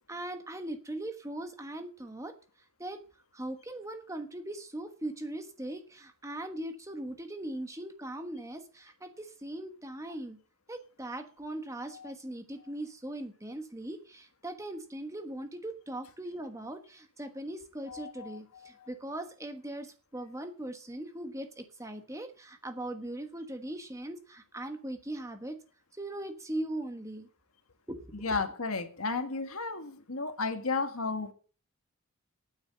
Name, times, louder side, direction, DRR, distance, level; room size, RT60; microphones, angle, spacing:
voice 1, 0.1-2.3 2.8-3.0 3.3-10.4 10.7-25.6 26.0-27.3 27.9-28.4, right 1 dB, 15° right, 1.2 m, -40 dB
voice 2, 17.9-18.4 28.2-31.3, left 4 dB, 80° left, 1.7 m, -33 dB
9.5 x 7.8 x 7.9 m
head